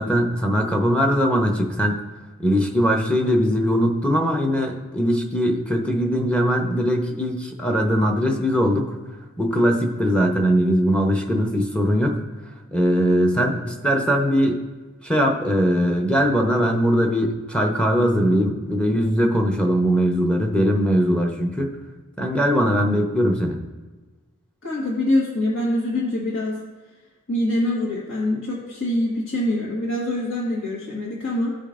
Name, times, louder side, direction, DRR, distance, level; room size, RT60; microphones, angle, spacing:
voice 1, 0.0-2.0 2.4-8.9 9.4-12.2 12.7-14.6 15.0-21.8 22.2-23.6, equal, 5° left, 1 dB, 0.8 m, -20 dB
voice 2, 24.6-26.6 27.3-31.6, left 1 dB, 65° left, -6 dB, 1.6 m, -24 dB
15.5 x 5.1 x 2.5 m, 1.3 s
head